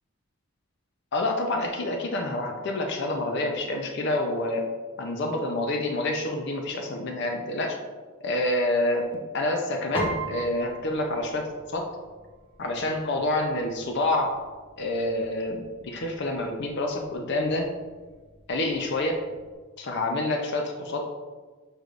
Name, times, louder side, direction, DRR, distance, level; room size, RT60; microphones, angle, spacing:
voice 1, 1.1-4.6 5.0-7.8 8.2-11.5 11.7-11.9 12.6-14.3 14.8-17.7 18.5-19.2 19.8-21.0, left 2 dB, 50° left, 2 dB, 0.5 m, -27 dB
Piano, 9.9-19.5, right 1 dB, 25° left, 0.9 m, -40 dB
6.3 x 3.2 x 2.5 m, 1.3 s
head